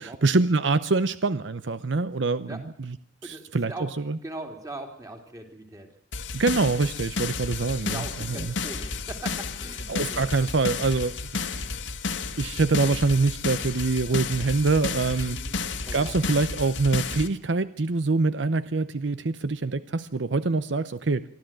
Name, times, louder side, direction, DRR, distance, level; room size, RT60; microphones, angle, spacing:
voice 1, 0.0-3.0 3.2-4.2 6.3-8.5 9.9-11.6 12.4-15.4 15.9-21.2, right 3 dB, 70° right, 14 dB, 0.8 m, -25 dB
voice 2, 3.2-3.9 4.2-5.9 7.6-10.2 15.3-15.6 15.8-16.1, right 2 dB, 20° right, 4 dB, 3.4 m, -40 dB
sound 1, 6.1-17.3, left 4 dB, 75° left, 1.7 m, -32 dB
24.5 x 13.5 x 9.1 m, 0.67 s
head